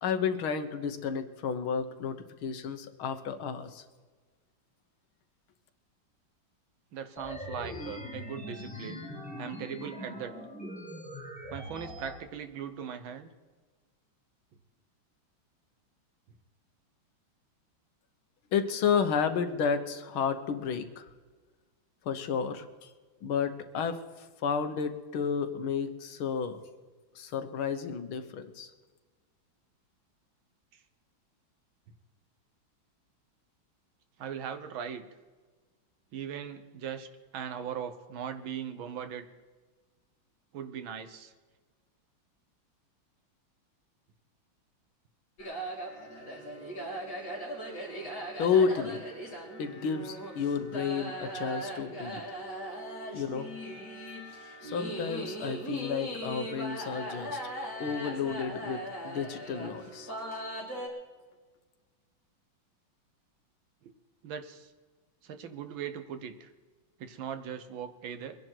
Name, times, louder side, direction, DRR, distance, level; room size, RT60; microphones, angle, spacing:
voice 1, 0.0-3.8 18.5-21.1 22.1-22.7 23.2-24.0 24.4-26.6 27.2-28.7 48.4-49.0 49.6-52.2 53.1-53.5 54.6-57.4 57.8-60.4, left 6 dB, 85° left, 9 dB, 2.0 m, -31 dB
voice 2, 6.9-9.0 9.4-10.3 11.5-13.3 34.2-35.1 36.1-37.1 37.3-39.3 40.5-41.3 64.2-64.7 65.2-66.5 67.0-68.4, right 8 dB, 75° right, 9 dB, 1.9 m, -39 dB
sound 1, 7.2-12.2, left 1 dB, 5° left, 2.2 m, -42 dB
sound 2, 45.4-60.9, right 1 dB, 45° left, 4.1 m, -39 dB
23.0 x 10.5 x 4.6 m, 1.4 s
omnidirectional pair, 2.2 m